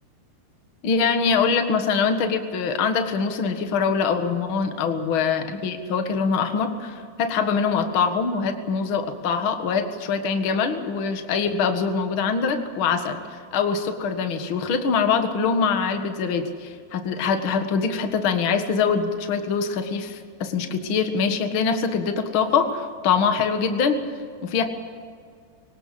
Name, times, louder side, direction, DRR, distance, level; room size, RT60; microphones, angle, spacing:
voice 1, 0.8-13.2 13.5-24.0 24.4-24.6, left 5 dB, 65° left, 7 dB, 1.2 m, -23 dB
24.0 x 19.0 x 7.7 m, 2.1 s
omnidirectional pair, 4.9 m